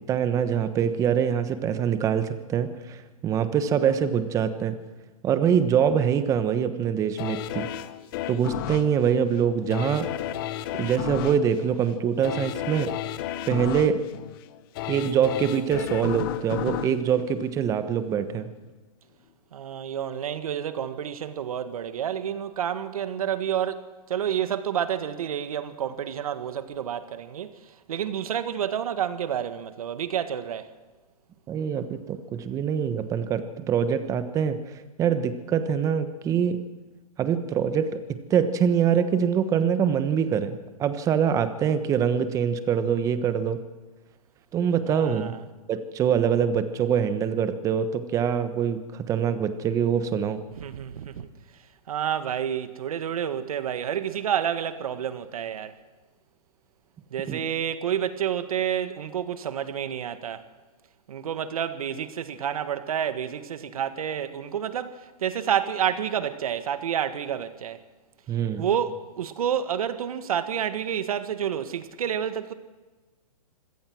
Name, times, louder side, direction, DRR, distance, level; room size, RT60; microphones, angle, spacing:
voice 1, 0.0-4.8 5.2-7.7 8.3-10.1 10.8-12.9 13.5-14.0 14.9-18.5 31.5-34.6 35.0-36.6 37.2-43.6 44.5-45.3 45.7-50.4 57.3-57.4 68.3-68.6, right 8 dB, 15° right, 1.1 m, -24 dB
sound 1, 7.2-18.1 18.6-18.7, left 12 dB, 35° left, 1.0 m, -34 dB
voice 2, 19.5-27.5 27.9-30.7 44.9-45.4 50.6-51.3 51.9-55.7 57.1-60.4 61.1-67.8 68.6-72.5, right 9 dB, 65° right, 1.7 m, -29 dB
25.5 x 17.0 x 6.3 m
hypercardioid pair, 150°, 20 cm